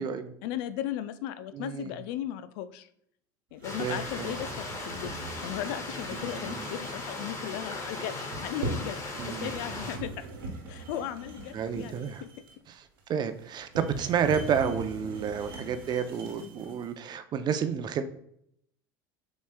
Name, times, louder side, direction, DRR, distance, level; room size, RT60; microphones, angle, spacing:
voice 1, 0.4-2.9 3.5-10.3 10.7-12.3, left 11 dB, 65° left, 12 dB, 0.4 m, -37 dB
voice 2, 1.5-1.9 3.8-4.3 6.1-6.7 9.2-9.5 11.5-12.2 12.7-12.8 13.1-18.0, right 7 dB, 40° right, 9 dB, 0.5 m, -30 dB
Stream, 3.6-10.0, left 2 dB, 25° left, 1.5 m, -38 dB
sound 1, 3.6-16.9, right 2 dB, 85° right, 1.1 m, -41 dB
7.0 x 3.1 x 2.2 m, 0.71 s
hypercardioid pair, 85°, 11 cm